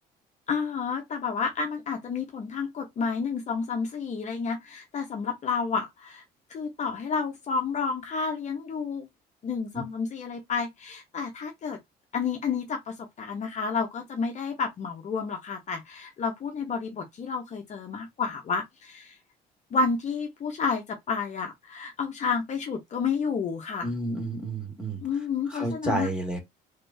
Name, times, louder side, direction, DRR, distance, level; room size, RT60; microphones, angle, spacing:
voice 1, 0.5-6.2 6.5-9.1 9.4-11.8 12.1-19.2 19.7-23.9 25.0-26.1, left 5 dB, 45° left, 0.9 m, -30 dB
voice 2, 23.8-25.0 25.5-26.4, right 2 dB, 5° right, 2.1 m, -30 dB
3.7 x 3.5 x 2.6 m
cardioid pair, 110°, 17 cm